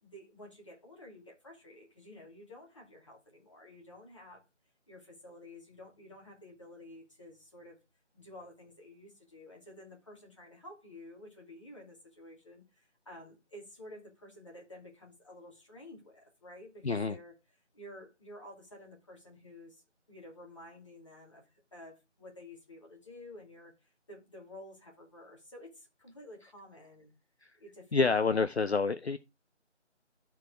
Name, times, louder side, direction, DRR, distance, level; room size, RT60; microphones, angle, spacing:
voice 1, 0.0-4.4 4.9-7.8 8.1-17.3 17.7-19.8 20.1-27.1 27.6-28.2, left 1 dB, 25° left, 2.3 m, -51 dB
voice 2, 16.8-17.2 27.9-29.2, left 4 dB, 60° left, 0.6 m, -27 dB
12.0 x 4.7 x 4.8 m
figure-of-eight pair, 165°, 36 cm